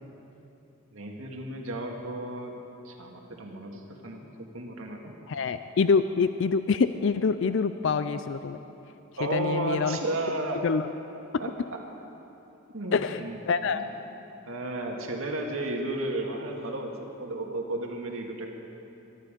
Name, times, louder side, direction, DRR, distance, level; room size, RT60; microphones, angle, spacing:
voice 1, 0.9-2.6 2.8-4.3 4.5-5.1 9.2-10.6 11.4-11.5 12.7-13.4 13.7-13.9 14.5-18.5, right 2 dB, 85° right, 1 dB, 1.9 m, -33 dB
voice 2, 5.3-8.6 9.3-10.0 10.6-10.8 12.9-13.8, left 5 dB, 60° left, 11 dB, 0.4 m, -26 dB
22.5 x 12.0 x 5.1 m, 3.0 s
head